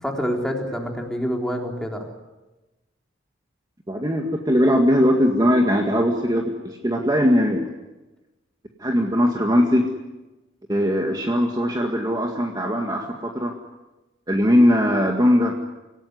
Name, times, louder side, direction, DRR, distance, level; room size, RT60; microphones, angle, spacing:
voice 1, 0.0-2.1, equal, 5° left, 1 dB, 3.7 m, -27 dB
voice 2, 3.9-7.7 8.8-9.9 10.7-13.5 14.3-15.6, equal, 20° right, 2 dB, 2.0 m, -20 dB
26.5 x 17.0 x 9.7 m, 1.1 s
head